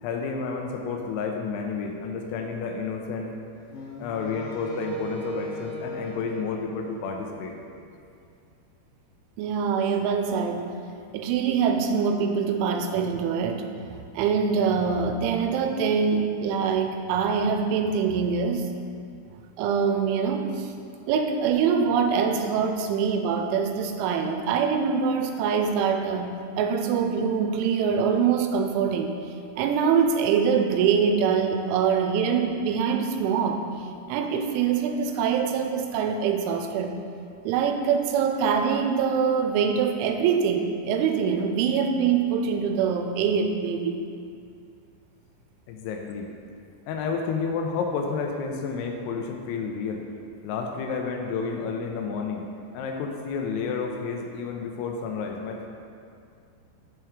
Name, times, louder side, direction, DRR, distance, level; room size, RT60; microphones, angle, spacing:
voice 1, 0.0-3.4 4.0-7.5 45.7-46.3 46.9-50.0 50.4-52.4 52.7-55.7, left 5 dB, 90° left, 2 dB, 2.3 m, -30 dB
Wind instrument woodwind instrument, 3.7-7.9, right 2 dB, 75° left, 2.8 m, -38 dB
voice 2, 9.4-10.6 11.1-13.6 13.9-18.7 19.6-20.7 21.1-26.3 26.6-29.1 29.6-33.6 34.1-36.9 37.5-44.0, right 6 dB, 85° right, 5 dB, 3.0 m, -24 dB
6.7 x 4.5 x 4.9 m, 2.4 s
omnidirectional pair, 5.4 m